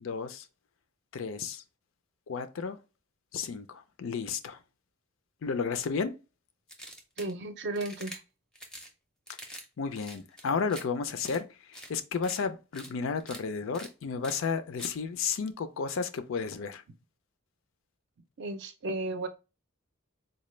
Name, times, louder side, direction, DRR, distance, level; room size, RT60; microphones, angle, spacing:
voice 1, 0.0-0.5 1.1-1.6 2.3-2.8 3.3-4.6 5.4-6.2 9.8-16.8, left 5 dB, 65° left, 0.4 m, -33 dB
sound 1, 6.7-7.3 7.7-8.2 8.5-8.9 9.3-9.6 9.9-10.8 11.2-11.4 11.7-11.9 12.2-12.4 12.7-12.9 13.2-13.4 13.7-13.9 14.2-14.4 14.8-14.9, equal, 5° left, 0.5 m, -45 dB
voice 2, 7.2-8.2 18.4-19.3, right 2 dB, 50° right, 0.5 m, -34 dB
4.0 x 2.2 x 3.1 m
head